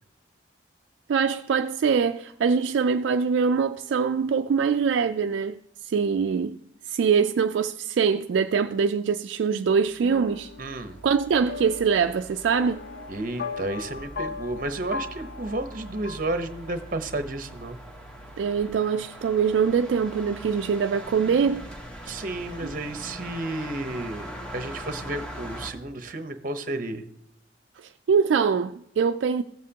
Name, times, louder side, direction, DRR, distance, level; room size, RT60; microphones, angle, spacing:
voice 1, 1.1-6.6 6.9-10.5 11.0-12.8 18.4-21.6 22.1-22.2 28.1-29.4, right 6 dB, 65° right, 0.3 m, -23 dB
sound 1, 9.7-25.7, equal, 5° left, 1.1 m, -42 dB
sound 2, 10.0-17.0, left 4 dB, 50° left, 0.5 m, -39 dB
voice 2, 10.6-11.0 13.1-17.8 22.1-24.3 24.5-27.0, right 2 dB, 45° right, 0.8 m, -32 dB
15.5 x 7.4 x 2.8 m
head